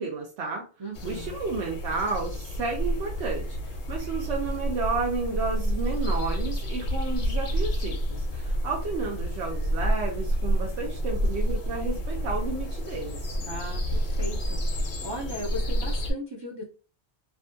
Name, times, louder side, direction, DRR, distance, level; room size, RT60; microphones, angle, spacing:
voice 1, 0.0-0.6 1.0-13.4, right 4 dB, 90° right, 0 dB, 0.9 m, -32 dB
voice 2, 0.8-1.3 13.4-14.6 15.0-16.6, equal, 40° right, -2 dB, 0.3 m, -37 dB
sound 1, 0.9-16.1, equal, 60° left, 0.7 m, -29 dB
2.6 x 2.2 x 2.5 m, 0.35 s
omnidirectional pair, 1.1 m